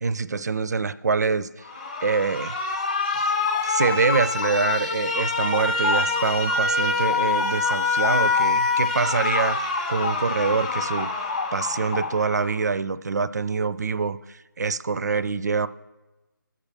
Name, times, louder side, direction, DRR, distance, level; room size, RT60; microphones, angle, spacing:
voice 1, 0.0-1.7 2.0-2.6 3.6-9.6 9.9-15.7, right 4 dB, 50° right, 14 dB, 0.5 m, -25 dB
Alarm, 1.6-12.7, left 3 dB, 20° left, 0.8 m, -26 dB
sound 1, 2.5-4.8 5.1-10.3 10.7-12.4, left 4 dB, 50° left, 0.5 m, -33 dB
20.5 x 7.3 x 3.4 m, 1.1 s
figure-of-eight pair, 170°, 11 cm